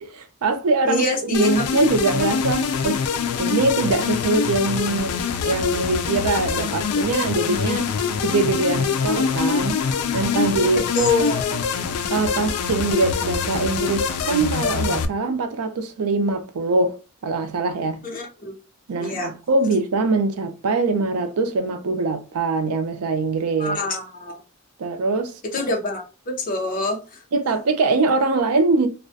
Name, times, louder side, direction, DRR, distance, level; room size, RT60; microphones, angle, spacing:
voice 1, 0.1-3.0 3.4-7.9 8.2-9.8 10.1-10.8 12.1-17.0 17.2-18.0 18.9-23.8 24.8-25.4 27.3-28.9, right 3 dB, 90° right, 0.4 m, -22 dB
voice 2, 0.8-1.5 10.9-11.6 18.0-18.5 19.0-19.3 23.6-24.4 25.5-27.2, left 2 dB, 40° left, 0.6 m, -25 dB
sound 1, 1.3-15.1, left 6 dB, 85° left, 0.3 m, -24 dB
2.3 x 2.1 x 2.6 m
head